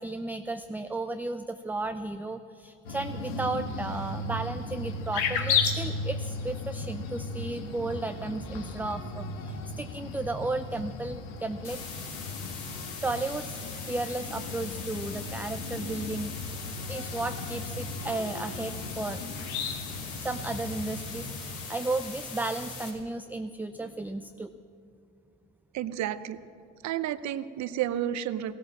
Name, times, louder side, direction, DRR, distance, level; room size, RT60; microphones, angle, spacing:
voice 1, 0.0-11.8 13.0-16.3 16.9-19.3 20.2-24.5, right 2 dB, 5° right, 9 dB, 0.4 m, -34 dB
sound 1, 2.8-21.7, left 4 dB, 80° left, 1.6 m, -35 dB
sound 2, 11.6-22.9, left 5 dB, 60° left, 3.3 m, -41 dB
voice 2, 25.7-26.4 26.8-28.6, right 11 dB, 50° right, 14 dB, 0.8 m, -31 dB
16.0 x 11.5 x 7.6 m, 2.5 s
hypercardioid pair, 70°, 35 cm